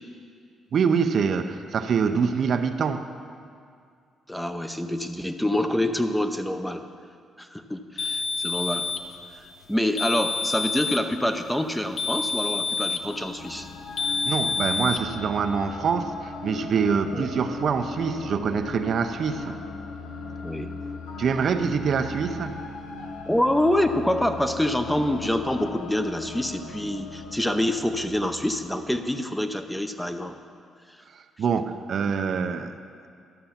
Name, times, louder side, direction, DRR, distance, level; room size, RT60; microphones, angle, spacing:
voice 1, 0.7-3.1 14.1-19.6 21.2-22.6 31.1-32.7, right 6 dB, 60° right, 8 dB, 0.6 m, -25 dB
voice 2, 4.3-6.8 7.4-8.9 9.7-13.7 17.1-17.3 20.4-20.7 23.3-30.4, left 1 dB, 5° left, 8 dB, 0.6 m, -26 dB
sound 1, 8.0-9.1 10.0-11.1 12.0-13.1 14.0-15.0, left 4 dB, 55° left, 0.9 m, -28 dB
sound 2, 13.1-29.3, left 4 dB, 90° left, 0.8 m, -38 dB
12.5 x 6.7 x 5.7 m, 2.2 s
cardioid pair, 90°, 0 cm